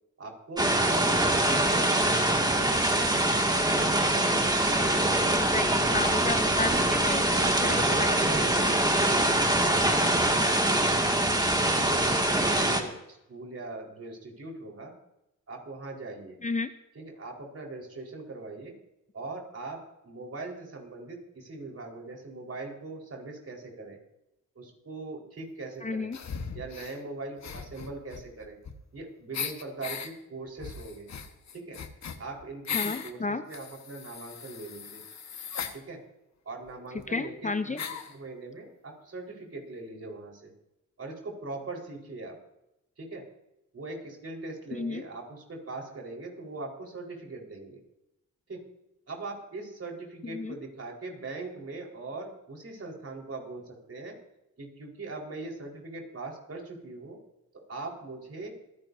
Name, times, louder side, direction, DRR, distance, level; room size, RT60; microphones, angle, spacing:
voice 1, 0.2-3.5 4.1-4.5 7.3-9.2 9.6-10.8 11.6-14.9 15.5-16.4 16.9-18.7 19.1-24.0 24.5-26.1 26.5-28.6 28.9-31.1 31.5-31.8 32.2-35.0 35.7-36.0 36.4-40.5 41.0-42.4 43.0-43.2 43.7-47.8 48.5-48.6 49.1-54.2 54.6-57.2 57.5-58.5, right 3 dB, 45° right, 0 dB, 4.6 m, -41 dB
sound 1, 0.6-12.8, right 1 dB, 10° right, 2.2 m, -24 dB
voice 2, 5.3-7.2 7.6-8.1 8.4-8.5 16.4-16.7 25.8-26.2 32.7-33.4 37.1-37.8 44.7-45.0 50.2-50.6, left 3 dB, 25° left, 10 dB, 0.7 m, -32 dB
sound 2, 26.1-27.0 27.4-29.0 29.3-30.1 30.6-33.1 33.5-35.8 36.7-36.8 37.0-37.1 37.8-38.1, left 6 dB, 55° left, 1.4 m, -38 dB
27.0 x 10.5 x 2.7 m, 0.87 s
cardioid pair, 70°, 33 cm